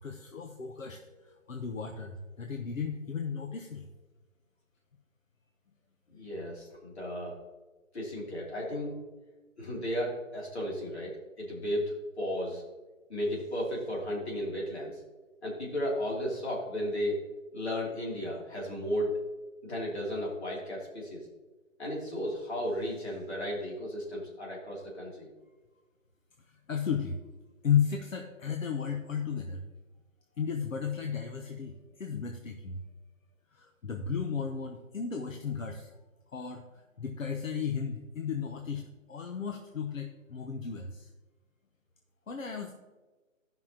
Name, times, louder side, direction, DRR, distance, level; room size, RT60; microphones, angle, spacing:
voice 1, 0.0-3.9 26.5-27.2 27.6-29.6 30.4-32.8 33.5-36.0 36.3-41.1 42.3-42.7, left 7 dB, 80° left, 4 dB, 1.0 m, -34 dB
voice 2, 6.1-7.4 7.9-9.0 9.6-12.6 13.1-15.0 15.4-17.3 17.5-19.2 19.6-21.3 21.8-25.3, equal, 55° left, -3 dB, 3.0 m, -34 dB
13.0 x 5.8 x 2.9 m, 1.2 s
hypercardioid pair, 175°, 39 cm